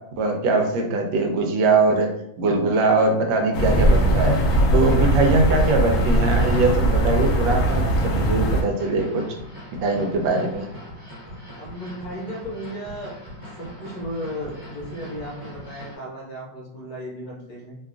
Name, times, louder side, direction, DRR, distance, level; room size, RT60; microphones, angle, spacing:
voice 1, 0.1-2.1 2.4-4.4 4.7-9.2 9.8-10.6, right 3 dB, 90° right, 3 dB, 1.3 m, -21 dB
sound 1, 3.5-8.6, right 1 dB, 80° left, 0.7 m, -20 dB
sound 2, 4.2-16.0, equal, 40° right, 1.2 m, -41 dB
voice 2, 4.9-5.2 10.1-10.2 11.5-13.2 13.6-17.8, equal, 65° left, -3 dB, 1.1 m, -35 dB
3.2 x 2.3 x 2.4 m, 0.80 s
omnidirectional pair, 2.0 m